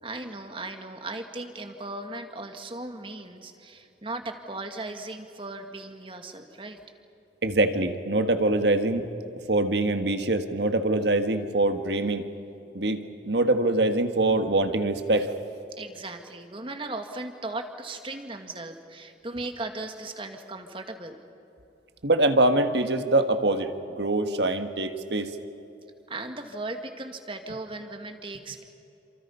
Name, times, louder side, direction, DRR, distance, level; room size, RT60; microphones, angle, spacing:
voice 1, 0.0-6.8 15.8-21.2 26.1-28.6, right 2 dB, 30° right, 6 dB, 1.8 m, -37 dB
voice 2, 7.4-9.0 9.5-12.2 12.7-15.3 22.0-25.3, right 2 dB, 70° right, 8 dB, 1.6 m, -24 dB
28.5 x 27.5 x 5.7 m, 2.9 s
head